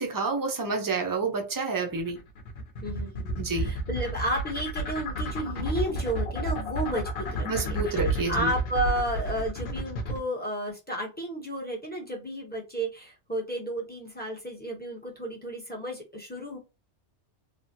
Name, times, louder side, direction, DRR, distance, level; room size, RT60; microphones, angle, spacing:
voice 1, 0.0-2.2 3.4-3.7 7.5-8.5, right 4 dB, 30° right, 0.4 m, -29 dB
sound 1, 2.0-10.2, left 1 dB, 60° left, 0.9 m, -31 dB
voice 2, 2.8-16.6, right 1 dB, 10° left, 0.6 m, -32 dB
3.3 x 2.0 x 2.6 m
omnidirectional pair, 1.2 m